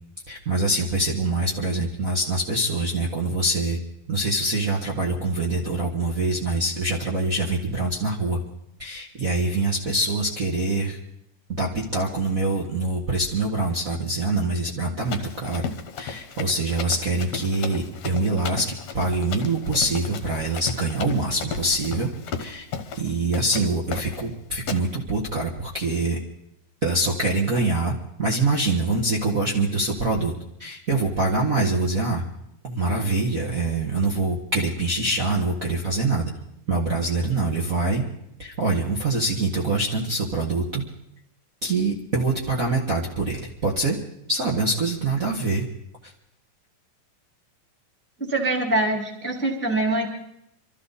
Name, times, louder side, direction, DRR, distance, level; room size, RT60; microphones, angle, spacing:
voice 1, 0.3-3.8 4.1-8.4 8.8-11.0 11.5-15.7 16.0-22.1 22.4-22.7 23.0-26.2 26.8-30.3 30.6-32.2 32.6-36.3 36.7-38.0 38.4-40.8 41.6-44.0 44.3-45.7 46.0-46.1, right 2 dB, 80° right, -2 dB, 0.7 m, -24 dB
Run, 15.1-23.1 23.3-23.7 23.9-24.3 24.7-24.9, left 6 dB, 60° left, 1.9 m, -35 dB
voice 2, 48.2-50.1, right 2 dB, 5° left, 1 dB, 0.8 m, -24 dB
25.0 x 13.5 x 4.1 m, 0.79 s
omnidirectional pair, 4.0 m